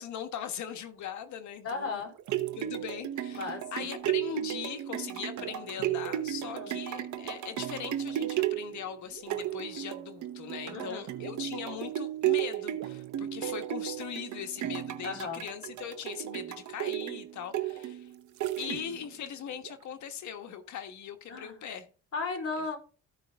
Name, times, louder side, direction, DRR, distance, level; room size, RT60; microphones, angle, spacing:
voice 1, 0.0-2.0 2.5-18.1 18.6-21.9, left 8 dB, 70° left, 1.4 m, -40 dB
voice 2, 1.6-2.1 3.3-3.8 6.4-6.8 10.7-11.0 15.0-15.4 21.3-21.6 22.1-22.8, left 4 dB, 50° left, 4.0 m, -35 dB
sound 1, 2.0-19.1 19.6-19.7, right 13 dB, 70° right, 1.0 m, -34 dB
14.5 x 5.2 x 3.6 m
cardioid pair, 90°, 30 cm